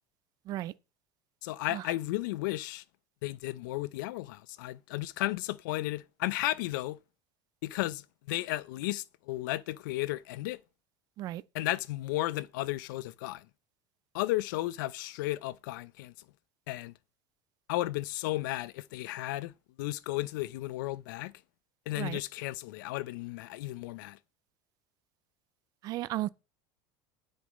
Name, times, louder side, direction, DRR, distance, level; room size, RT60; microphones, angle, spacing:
voice 1, 1.4-2.8 3.2-7.0 7.6-10.6 11.5-13.5 14.1-16.1 16.7-16.9 17.7-19.5 19.8-21.3 21.9-24.2, left 17 dB, 85° left, 0.6 m, -34 dB
voice 2, 25.8-26.3, right 15 dB, 40° right, 0.5 m, -34 dB
9.8 x 6.4 x 5.1 m
cardioid pair, 165°, 10 cm